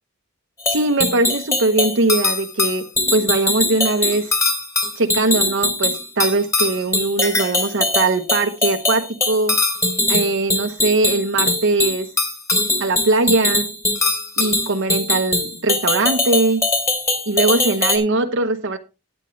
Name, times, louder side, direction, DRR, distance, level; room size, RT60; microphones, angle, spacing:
sound 1, 0.6-18.0, left 2 dB, 15° left, 3.1 m, -21 dB
voice 1, 0.7-2.8 3.1-4.3 5.0-9.5 10.1-12.1 12.8-13.7 14.4-16.6 17.3-18.8, right 2 dB, 65° right, 6 dB, 1.0 m, -20 dB
12.5 x 9.1 x 3.2 m, 0.27 s
head